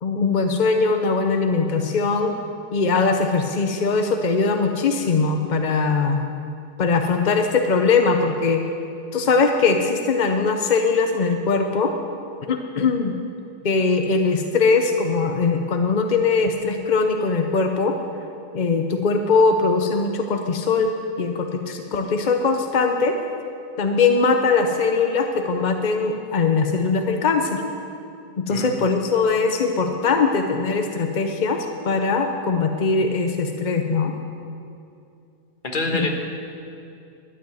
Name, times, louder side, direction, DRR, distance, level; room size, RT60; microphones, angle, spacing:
voice 1, 0.0-2.4 2.7-6.2 6.8-8.6 9.1-11.9 12.5-13.2 13.6-18.0 18.5-23.2 23.8-27.6 28.4-34.1 35.9-36.1, left 4 dB, 50° left, 5 dB, 0.5 m, -21 dB
voice 2, 35.6-36.1, left 3 dB, 35° left, 2 dB, 1.3 m, -25 dB
12.0 x 7.7 x 9.2 m, 2.6 s
omnidirectional pair, 1.7 m